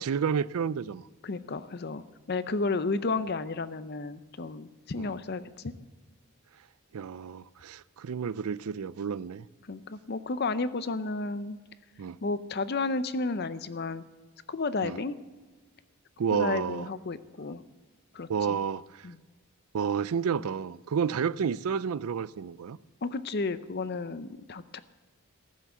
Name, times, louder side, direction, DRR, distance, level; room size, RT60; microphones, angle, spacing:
voice 1, 0.0-1.1 5.0-5.2 6.9-9.5 12.0-12.2 14.8-15.0 16.2-16.9 18.3-19.1 19.7-22.8, right 7 dB, 80° right, 0.4 m, -30 dB
voice 2, 1.2-5.5 9.7-11.6 12.2-14.0 14.5-15.2 16.3-17.6 18.1-18.6 19.0-19.2 23.0-24.8, left 3 dB, 45° left, 0.6 m, -32 dB
15.0 x 7.4 x 8.0 m
head